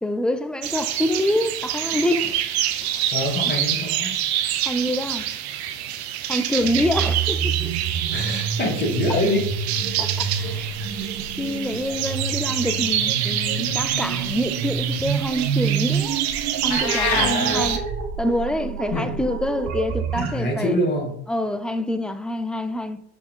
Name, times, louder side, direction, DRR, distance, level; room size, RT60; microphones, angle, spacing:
voice 1, 0.0-2.4 2.8-3.1 3.4-3.5 4.6-5.3 6.3-7.5 10.0-10.8 11.4-16.2 16.6-17.8 18.2-20.8 21.3-23.0, left 1 dB, 5° left, 0.5 m, -26 dB
sound 1, 0.6-17.8, right 11 dB, 85° right, 0.8 m, -27 dB
voice 2, 3.1-4.1 8.1-9.5 17.1-17.7 18.9-19.1 20.2-21.1, left 1 dB, 30° left, 2.7 m, -25 dB
sound 2, 6.6-20.3, right 6 dB, 65° right, 1.5 m, -28 dB
sound 3, 16.7-17.3, left 6 dB, 85° left, 1.3 m, -24 dB
6.5 x 4.5 x 3.8 m
hypercardioid pair, 80°, 31 cm